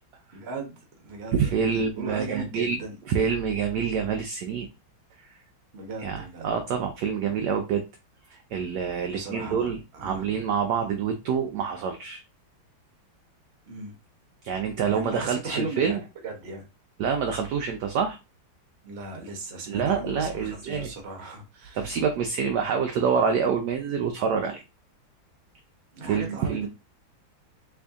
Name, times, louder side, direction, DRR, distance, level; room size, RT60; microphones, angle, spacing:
voice 1, 0.3-3.0 5.7-6.5 9.0-9.7 9.9-10.3 13.6-13.9 14.9-16.7 18.8-21.9 25.9-26.7, right 2 dB, 45° right, 0.9 m, -37 dB
voice 2, 1.3-2.8 3.1-4.7 6.0-7.8 8.5-12.2 14.4-16.0 17.0-18.2 19.7-20.9 21.8-24.6 26.1-26.7, right 6 dB, 75° right, 0.9 m, -26 dB
3.3 x 2.6 x 3.5 m
omnidirectional pair, 2.2 m